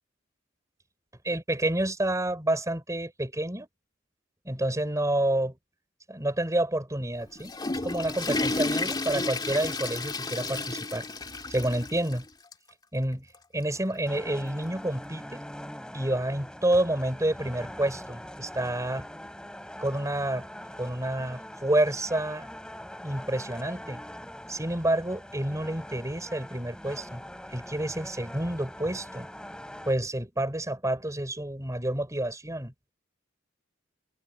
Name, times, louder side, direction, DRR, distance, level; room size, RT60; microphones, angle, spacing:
voice 1, 1.2-3.7 4.4-5.6 6.1-7.5 7.8-11.1 11.5-12.3 12.9-13.2 13.5-15.4 15.9-19.1 19.8-20.5 20.8-22.5 23.0-24.0 24.5-27.2 27.5-29.3 29.8-32.7, right 1 dB, 15° right, 5.1 m, -29 dB
Water / Toilet flush, 7.2-12.2 12.5-12.6 13.3-13.4 14.7-14.8, left 2 dB, 20° left, 2.4 m, -32 dB
sound 1, 14.0-29.9, equal, 5° left, 4.6 m, -43 dB
head